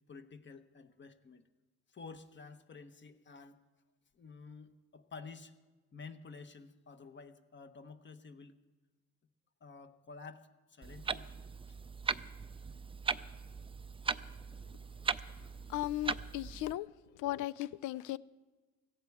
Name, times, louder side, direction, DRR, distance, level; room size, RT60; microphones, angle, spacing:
voice 1, 0.1-1.4 1.9-3.6 4.1-5.5 5.9-8.6 9.6-11.3 11.7-11.8, left 4 dB, 40° left, 10 dB, 1.1 m, -51 dB
Clock, 10.8-16.7, right 5 dB, 20° right, 0.4 m, -39 dB
voice 2, 15.7-16.9 17.2-18.2, left 15 dB, 85° left, 20 dB, 0.5 m, -36 dB
17.0 x 14.5 x 4.7 m, 1.3 s
cardioid pair, 90°, 30 cm